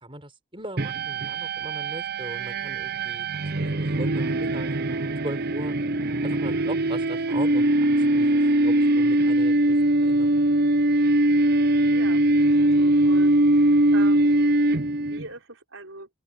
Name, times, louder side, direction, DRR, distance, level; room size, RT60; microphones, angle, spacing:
voice 1, 0.0-5.7 6.2-9.8 10.0-10.5, right 1 dB, 25° right, 5.2 m, -39 dB
sound 1, 0.8-15.2, right 1 dB, 45° right, 0.7 m, -21 dB
voice 2, 11.9-12.2 12.5-14.5 15.0-16.1, right 3 dB, 65° right, 5.8 m, -41 dB
open air
head